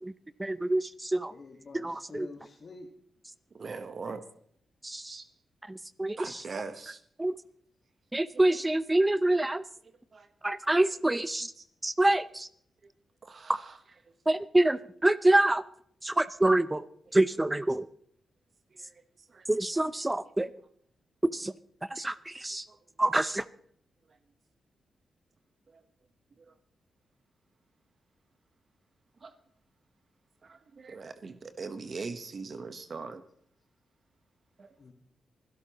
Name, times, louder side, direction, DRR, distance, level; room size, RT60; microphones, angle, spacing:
voice 1, 0.4-1.3 1.7-2.3 4.8-5.1 5.7-6.2 7.2-7.3 8.1-9.6 10.4-11.5 11.8-12.5 14.3-15.6 16.0-16.8 17.1-17.9 19.5-20.5 21.3-21.5 21.9-22.6 23.0-23.4, right 1 dB, 20° right, 15 dB, 0.6 m, -26 dB
voice 2, 1.3-2.9 34.8-34.9, left 3 dB, 55° left, 0 dB, 1.8 m, -47 dB
voice 3, 3.5-4.2 5.1-5.3 6.2-7.0 8.3-8.5 10.1-10.6 11.6-11.7 12.8-12.9 13.2-13.8 14.0-14.4 16.2-16.3 17.1-17.2 18.7-19.0 19.3-19.5 19.7-20.1 22.7-22.8 24.1-24.2 25.7-25.8 26.4-26.6 29.2-29.3 30.4-33.2 34.6-34.8, right 4 dB, 55° right, 9 dB, 1.2 m, -42 dB
25.0 x 12.0 x 3.0 m, 0.64 s
supercardioid pair, 45°, 0 cm